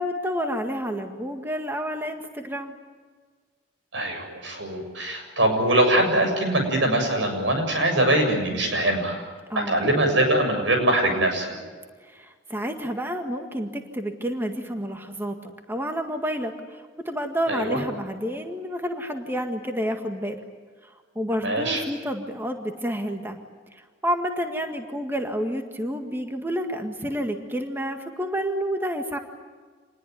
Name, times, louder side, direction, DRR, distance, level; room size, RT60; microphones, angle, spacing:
voice 1, 0.0-2.7 9.5-9.9 12.0-20.4 20.8-23.4 23.7-29.2, equal, 10° right, 4 dB, 1.8 m, -29 dB
voice 2, 3.9-9.2 9.7-11.6 17.5-17.8 21.4-21.8, right 1 dB, 90° right, 4 dB, 7.3 m, -22 dB
27.5 x 20.5 x 9.5 m, 1.5 s
head